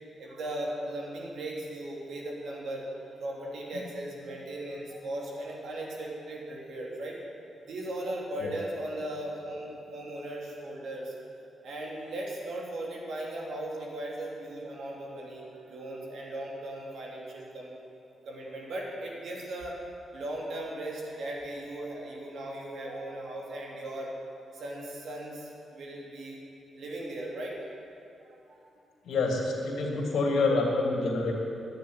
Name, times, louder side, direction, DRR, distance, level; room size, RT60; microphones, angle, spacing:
voice 1, 0.2-2.9 3.2-7.2 7.6-11.1 11.6-17.7 18.2-19.8 20.1-24.1 24.5-26.4 26.7-27.7 28.2-28.6, right 1 dB, 70° right, -3 dB, 3.1 m, -37 dB
voice 2, 29.0-31.3, left 3 dB, 75° left, 0 dB, 2.7 m, -27 dB
10.5 x 9.2 x 9.6 m, 2.7 s
supercardioid pair, 55°, 0 cm